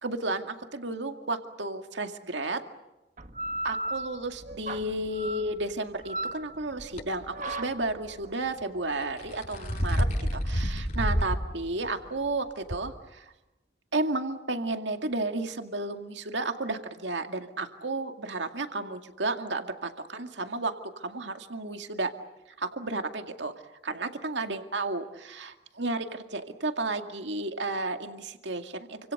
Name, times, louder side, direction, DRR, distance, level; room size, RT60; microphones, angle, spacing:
voice 1, 0.0-2.6 3.6-10.1 10.3-13.3 13.9-22.1 22.6-23.5 23.8-29.1, right 2 dB, 75° right, 6 dB, 2.2 m, -32 dB
sound 1, 3.2-12.4, right 1 dB, 40° right, 1.5 m, -38 dB
sound 2, 6.8-7.0 9.0-11.4 11.8-11.9 12.7-12.8, equal, 40° left, 6.6 m, -28 dB
29.0 x 26.0 x 6.7 m, 1.0 s
head